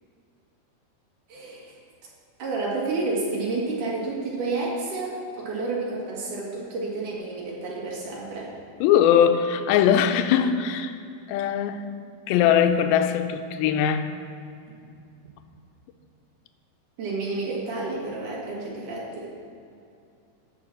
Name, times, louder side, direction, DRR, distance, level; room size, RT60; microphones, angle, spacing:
voice 1, 1.3-1.8 2.4-8.5 17.0-19.3, right 3 dB, 60° right, -4 dB, 3.3 m, -30 dB
voice 2, 8.8-11.0 11.3-11.8 12.3-14.1, left 9 dB, 85° left, 8 dB, 2.4 m, -21 dB
14.5 x 5.0 x 6.1 m, 2.5 s
omnidirectional pair, 4.3 m